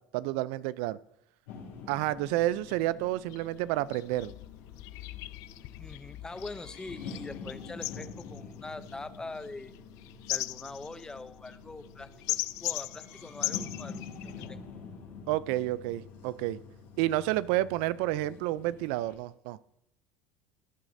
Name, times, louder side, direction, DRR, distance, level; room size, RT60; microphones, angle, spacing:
voice 1, 0.1-1.0 1.9-4.3 15.3-16.6 17.0-19.6, right 16 dB, 80° right, 18 dB, 0.4 m, -30 dB
sound 1, 1.5-19.1, left 5 dB, 85° left, 4.5 m, -47 dB
sound 2, 2.7-2.8 3.3-3.5 3.9-14.5, left 18 dB, 65° left, 0.4 m, -38 dB
voice 2, 5.8-9.8 10.3-14.6, left 3 dB, 10° left, 14 dB, 0.6 m, -43 dB
17.5 x 9.1 x 2.7 m, 0.78 s
supercardioid pair, 120°, 6 cm